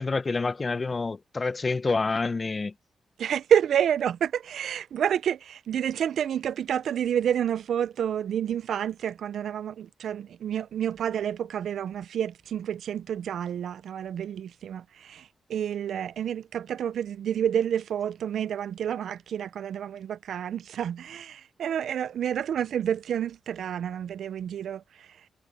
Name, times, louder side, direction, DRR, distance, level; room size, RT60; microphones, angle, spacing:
voice 1, 0.0-2.7, left 3 dB, 30° left, 0.8 m, -27 dB
voice 2, 3.2-24.8, right 9 dB, 85° right, 0.4 m, -29 dB
cardioid pair, 110°, 0 cm